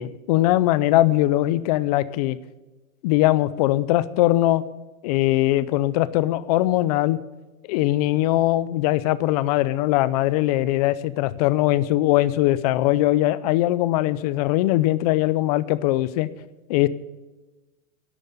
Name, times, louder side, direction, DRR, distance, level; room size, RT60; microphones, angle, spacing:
voice 1, 0.0-2.4 3.0-4.6 5.0-7.2 7.7-16.3 16.7-16.9, left 15 dB, 30° left, 17 dB, 0.5 m, -21 dB
11.5 x 7.7 x 9.9 m, 1.2 s
hypercardioid pair, 150°, 42 cm